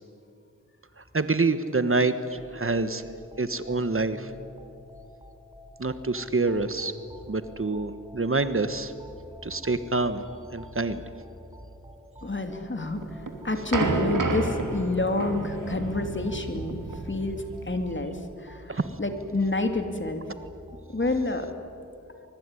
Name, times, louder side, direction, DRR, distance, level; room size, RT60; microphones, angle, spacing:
voice 1, 1.0-3.0 3.4-4.3 5.8-6.9 7.3-8.9 9.4-10.2 10.5-11.0 18.7-18.9, right 3 dB, 45° right, 12 dB, 1.4 m, -26 dB
sound 1, 2.3-21.5, equal, 15° right, 4.4 m, -48 dB
voice 2, 12.2-16.8 17.1-20.2 20.9-21.5, left 2 dB, 40° left, 6 dB, 2.9 m, -29 dB
sound 2, 13.0-17.9, right 3 dB, 80° right, 3.0 m, -31 dB
24.0 x 22.5 x 9.9 m, 2.5 s
wide cardioid pair, 55°, 31 cm